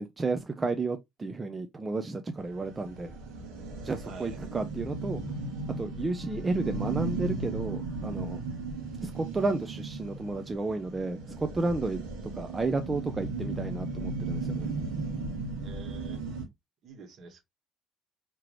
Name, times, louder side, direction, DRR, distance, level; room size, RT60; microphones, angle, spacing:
voice 1, 0.0-3.1 3.8-5.2 5.8-8.4 9.0-12.0 12.4-14.7, right 3 dB, 25° right, 0.6 m, -32 dB
sound 1, 2.4-16.5, right 3 dB, 75° right, 1.2 m, -36 dB
voice 2, 4.0-4.4 15.6-16.2 16.8-17.4, right 4 dB, 55° right, 1.4 m, -47 dB
4.8 x 3.0 x 3.0 m
figure-of-eight pair, 50°, 0 cm